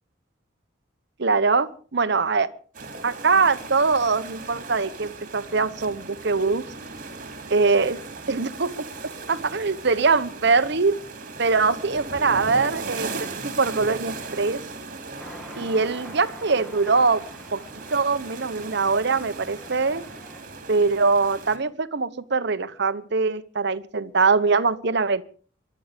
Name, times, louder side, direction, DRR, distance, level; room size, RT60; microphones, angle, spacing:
voice 1, 1.2-2.5 3.0-6.6 7.5-8.0 8.3-10.9 11.4-14.6 15.5-17.2 17.5-20.0 20.7-25.2, right 4 dB, 60° right, 12 dB, 1.0 m, -23 dB
sound 1, 2.7-21.6, right 3 dB, 40° right, 3.2 m, -38 dB
sound 2, 15.2-20.4, equal, ahead, 2.4 m, -45 dB
22.5 x 12.0 x 5.1 m, 0.43 s
head